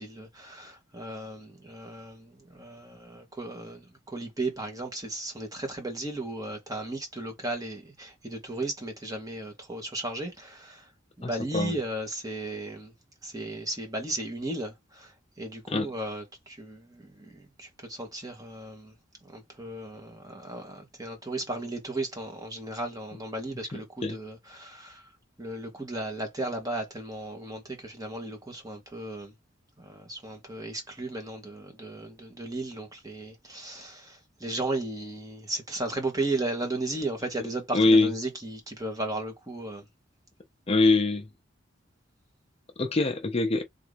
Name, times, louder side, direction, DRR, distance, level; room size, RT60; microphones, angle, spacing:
voice 1, 0.0-10.9 11.2-12.9 13.2-18.9 19.2-25.1 25.4-29.3 29.8-39.8, right 2 dB, 20° right, 1.9 m, -35 dB
voice 2, 11.2-11.8 15.7-15.9 24.0-24.2 37.7-38.1 40.7-41.3 42.8-43.6, left 2 dB, 30° left, 0.6 m, -23 dB
3.8 x 3.5 x 3.4 m
head